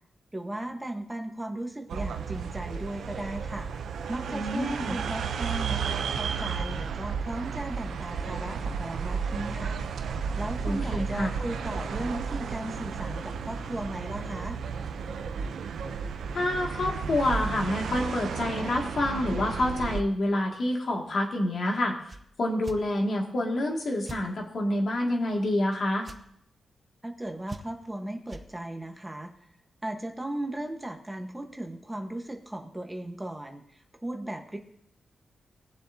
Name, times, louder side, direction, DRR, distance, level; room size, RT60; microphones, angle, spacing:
voice 1, 0.3-3.7 4.1-9.8 10.4-14.6 27.0-29.5 29.8-34.6, right 1 dB, 15° right, 3 dB, 1.4 m, -36 dB
sound 1, 1.9-20.0, right 6 dB, 85° right, 0.7 m, -33 dB
voice 2, 4.3-4.9 10.6-11.3 16.3-21.9 22.4-26.1, left 1 dB, 60° left, 0 dB, 2.4 m, -27 dB
sound 2, 22.1-22.2 22.6-22.8 24.0-24.2 26.0-26.2 27.5-27.9 28.3-28.5, right 2 dB, 30° right, 1.0 m, -41 dB
20.5 x 7.4 x 2.9 m, 0.72 s
cardioid pair, 75°, 0 cm